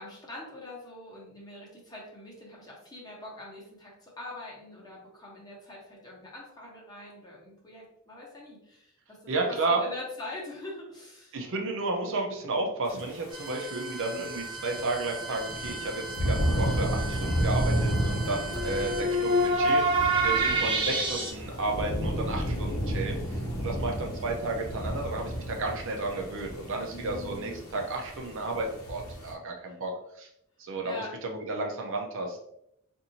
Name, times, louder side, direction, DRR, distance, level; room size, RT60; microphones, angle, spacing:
voice 1, 0.0-11.4 26.9-27.6 29.6-29.8 30.8-31.1, left 2 dB, 20° left, -4 dB, 1.1 m, -43 dB
voice 2, 9.3-9.8 11.3-30.3 30.6-32.4, right 2 dB, 65° right, 1 dB, 0.7 m, -32 dB
sound 1, 13.0-13.1 14.1-29.3, right 1 dB, 85° left, 0.9 m, -32 dB
sound 2, 13.3-21.3, right 1 dB, 20° right, 0.6 m, -29 dB
4.1 x 2.7 x 2.7 m, 0.75 s
head